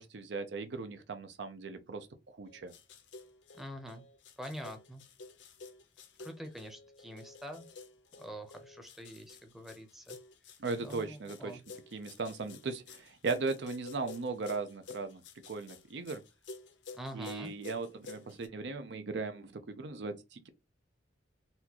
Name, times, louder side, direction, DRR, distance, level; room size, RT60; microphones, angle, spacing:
voice 1, 0.0-2.7 10.6-11.6 11.9-16.2 17.1-20.5, right 4 dB, 70° right, 0.5 m, -38 dB
sound 1, 2.4-18.5, left 4 dB, 80° left, 0.6 m, -51 dB
voice 2, 3.5-4.0 4.4-5.0 6.2-7.7 8.2-10.2 10.8-11.6 16.9-17.5, equal, ahead, 0.7 m, -45 dB
4.1 x 2.3 x 2.8 m
head